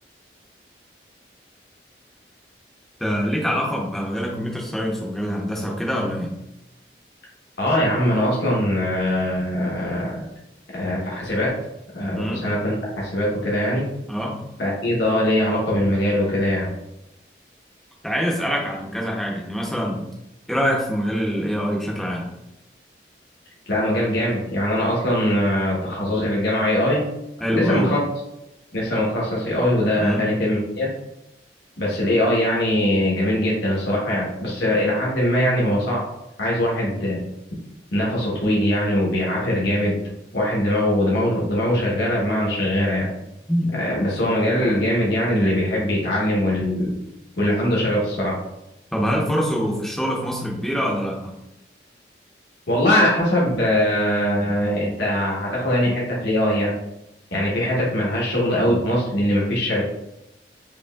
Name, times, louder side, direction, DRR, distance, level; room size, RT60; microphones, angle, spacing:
voice 1, 3.0-6.3 12.2-12.4 14.1-14.4 18.0-20.0 20.5-22.3 27.4-27.9 30.0-30.3 43.5-43.7 48.9-51.3, equal, ahead, -2 dB, 0.6 m, -24 dB
voice 2, 7.6-10.3 10.7-11.5 11.9-13.9 14.6-16.7 23.7-27.0 27.5-28.0 28.7-30.9 31.8-36.0 36.4-37.2 37.9-40.0 40.3-43.1 43.7-46.9 47.4-48.4 52.7-56.7 57.3-59.8, left 1 dB, 70° left, -5 dB, 1.1 m, -21 dB
5.1 x 2.9 x 2.3 m, 0.89 s
head